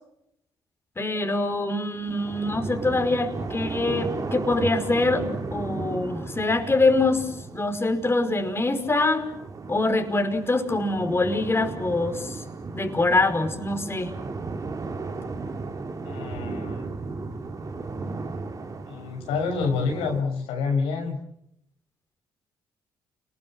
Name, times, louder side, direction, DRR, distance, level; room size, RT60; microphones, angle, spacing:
voice 1, 1.0-5.3 5.5-9.3 9.7-12.4 12.7-14.1, left 2 dB, 25° left, 5 dB, 5.3 m, -24 dB
sound 1, 2.0-20.2, right 3 dB, 35° right, 3.5 m, -35 dB
voice 2, 16.0-16.8 18.9-21.2, left 4 dB, 85° left, 2 dB, 6.6 m, -27 dB
29.5 x 21.0 x 7.7 m, 0.77 s
supercardioid pair, 65°, 9 cm